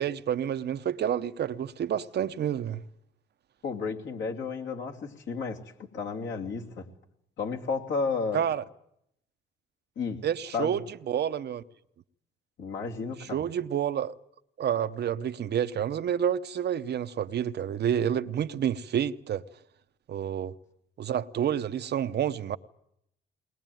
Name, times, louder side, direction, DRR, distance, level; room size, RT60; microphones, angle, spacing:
voice 1, 0.0-2.8 8.3-8.6 10.2-11.6 13.2-14.1 14.6-19.4 20.1-20.5 21.0-22.6, right 9 dB, 55° right, 0.8 m, -29 dB
voice 2, 3.6-6.9 7.4-8.4 10.0-10.2 10.5-10.8 12.6-13.4, left 4 dB, 70° left, 2.8 m, -32 dB
21.0 x 20.0 x 9.2 m
cardioid pair, 90°, 20 cm